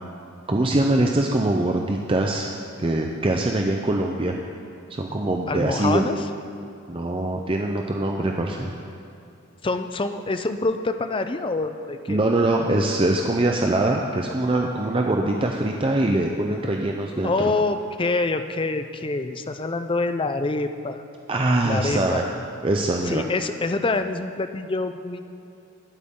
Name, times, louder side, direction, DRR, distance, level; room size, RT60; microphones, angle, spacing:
voice 1, 0.5-2.5 2.8-4.3 4.9-6.1 6.9-8.7 12.1-17.3 21.3-22.2 22.6-23.3, right 1 dB, 25° right, 1 dB, 0.6 m, -23 dB
voice 2, 5.5-6.2 9.6-12.2 17.2-21.0 21.6-22.3 23.0-25.4, left 3 dB, 25° left, 9 dB, 0.5 m, -26 dB
20.0 x 8.2 x 3.7 m, 2.7 s
head